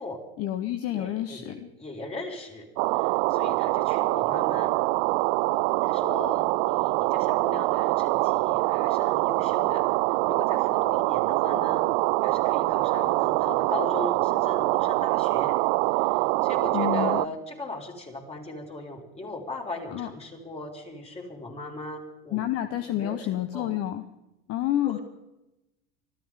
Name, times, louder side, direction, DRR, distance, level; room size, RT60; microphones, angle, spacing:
voice 1, 0.4-1.7 16.7-17.2 19.9-20.1 22.3-24.0 24.5-25.0, left 12 dB, 50° left, 10 dB, 1.3 m, -29 dB
voice 2, 0.9-2.7 2.9-4.7 5.8-10.0 10.2-11.9 12.2-15.6 16.0-22.4 22.9-23.8 24.8-25.0, left 2 dB, 20° left, 0 dB, 5.5 m, -38 dB
sound 1, 2.8-17.3, right 23 dB, 65° right, 0.6 m, -24 dB
25.5 x 14.5 x 3.8 m, 0.93 s
hypercardioid pair, 100°, 31 cm